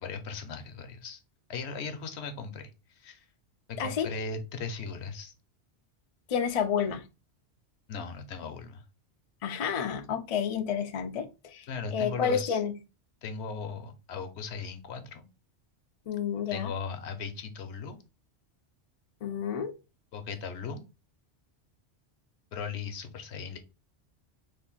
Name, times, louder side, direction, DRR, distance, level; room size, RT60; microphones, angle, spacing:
voice 1, 0.0-1.2 1.5-2.7 3.0-3.2 3.7-5.3 7.9-8.8 11.7-12.6 13.2-15.3 16.5-18.0 20.1-20.8 22.5-23.6, left 5 dB, 70° left, 0.9 m, -37 dB
voice 2, 6.3-7.0 9.4-11.7 11.9-12.7 16.1-16.7 19.2-19.7, left 7 dB, 55° left, 0.4 m, -30 dB
3.3 x 2.5 x 3.7 m
omnidirectional pair, 1.2 m